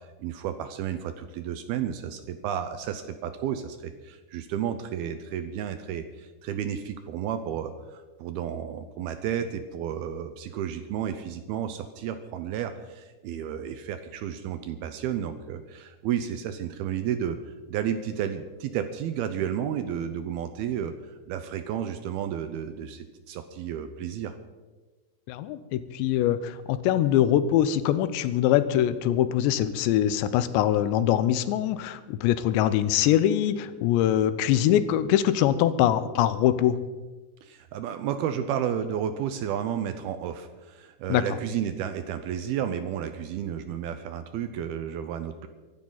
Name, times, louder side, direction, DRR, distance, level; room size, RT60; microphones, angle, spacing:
voice 1, 0.0-21.0 21.3-24.4 37.4-45.5, right 9 dB, 80° right, 9 dB, 2.4 m, -32 dB
voice 2, 25.3-36.8 41.1-41.2, left 11 dB, 90° left, 13 dB, 3.0 m, -23 dB
24.5 x 11.5 x 4.0 m, 1.3 s
omnidirectional pair, 5.0 m